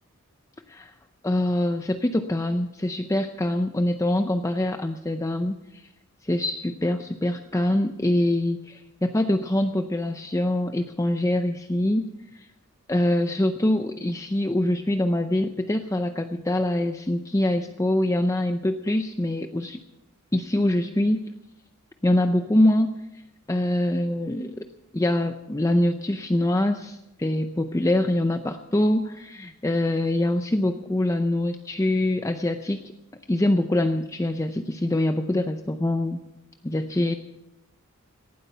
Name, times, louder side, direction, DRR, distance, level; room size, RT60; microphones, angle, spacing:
voice 1, 1.2-5.8 6.2-12.1 12.3-12.5 12.9-19.8 20.3-21.2 22.0-22.9 23.5-24.6 24.9-32.9 33.3-36.2 36.6-37.1, left 1 dB, 15° left, 7 dB, 0.5 m, -24 dB
18.0 x 12.5 x 5.6 m, 0.92 s
head